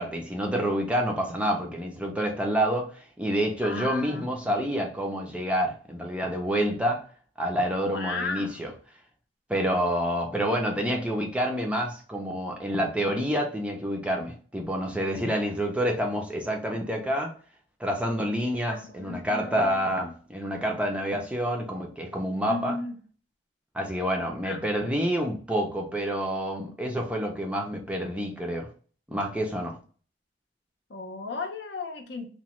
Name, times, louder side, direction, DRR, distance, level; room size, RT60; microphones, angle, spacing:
voice 1, 0.0-7.0 7.4-8.7 9.5-17.3 17.8-22.7 23.7-28.7 29.1-29.8, equal, 5° right, 1 dB, 0.4 m, -28 dB
voice 2, 3.6-4.8 7.8-8.6 18.7-20.1 22.5-23.0 24.4-24.6 30.9-32.3, left 4 dB, 65° left, 4 dB, 0.6 m, -36 dB
2.9 x 2.2 x 3.0 m, 0.42 s
head